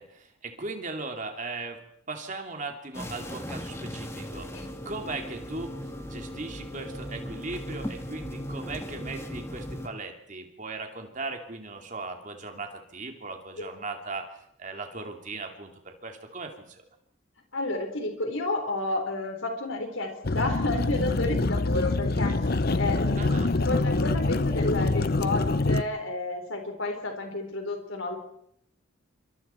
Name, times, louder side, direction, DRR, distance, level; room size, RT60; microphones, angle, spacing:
voice 1, 0.0-5.8 6.1-14.3 14.6-16.8 23.2-23.5, right 3 dB, 35° right, 4 dB, 2.8 m, -38 dB
sound 1, 2.9-9.9, equal, 15° left, 1.7 m, -38 dB
voice 2, 17.5-22.4 22.7-28.2, left 2 dB, 65° left, 4 dB, 4.4 m, -31 dB
sound 2, 20.2-25.8, left 2 dB, 50° left, 0.8 m, -25 dB
27.0 x 24.5 x 4.5 m, 0.72 s
head